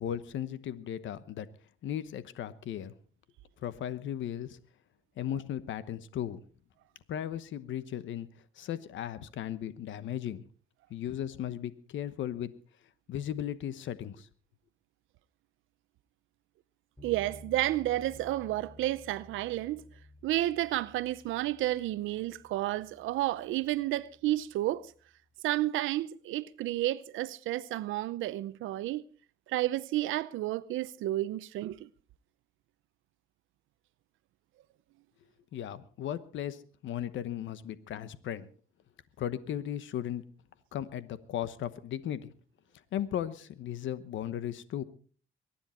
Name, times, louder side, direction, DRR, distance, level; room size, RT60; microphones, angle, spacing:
voice 1, 0.0-1.5 1.8-2.9 3.6-4.6 5.2-6.4 7.1-8.3 8.6-10.4 10.9-12.5 13.1-14.3 35.5-38.5 39.2-40.2 40.7-42.3 42.9-44.8, left 10 dB, 75° left, 1.1 m, -36 dB
sound 1, 17.0-25.1, left 1 dB, 5° left, 3.9 m, -55 dB
voice 2, 17.0-19.8 20.2-24.9 25.4-29.0 29.5-31.9, right 15 dB, 90° right, 0.7 m, -31 dB
23.0 x 10.0 x 4.3 m
cardioid pair, 90°, 20 cm